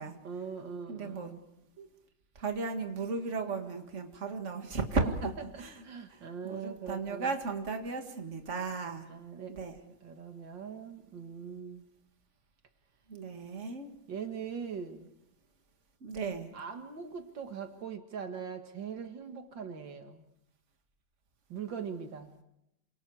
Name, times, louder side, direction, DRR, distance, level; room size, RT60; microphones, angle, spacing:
voice 1, 0.0-1.4 5.5-7.3 9.1-11.8 14.1-15.1 16.5-20.2 21.5-22.3, right 6 dB, 85° right, 6 dB, 2.5 m, -41 dB
voice 2, 0.9-1.3 1.8-1.9 2.4-5.3 5.6-5.8 6.1-9.1 9.5-9.7 13.1-13.9 16.0-16.5, right 4 dB, 40° right, 5 dB, 2.3 m, -35 dB
28.0 x 26.5 x 4.9 m, 0.84 s
omnidirectional pair, 2.0 m